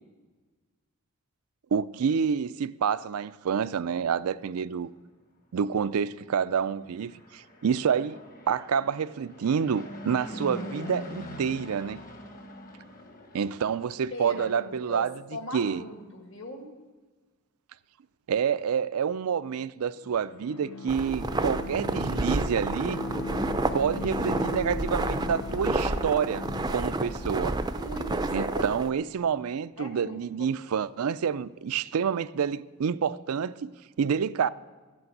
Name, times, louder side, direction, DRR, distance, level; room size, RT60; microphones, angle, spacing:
voice 1, 1.7-4.9 5.5-8.2 8.5-12.0 13.3-15.1 15.5-15.8 18.3-23.0 23.7-27.6 28.3-33.7 34.0-34.5, right 7 dB, 85° right, 0.4 m, -28 dB
Fixed-wing aircraft airplane, 6.9-14.2, left 1 dB, 40° left, 1.3 m, -43 dB
voice 2, 14.1-16.7 27.7-28.7 29.8-30.7, left 1 dB, 55° left, 2.0 m, -39 dB
Bowed string instrument, 20.0-27.7, left 2 dB, 80° left, 0.6 m, -38 dB
sound 1, 20.9-28.9, right 2 dB, 20° right, 0.4 m, -30 dB
13.5 x 8.5 x 7.8 m
head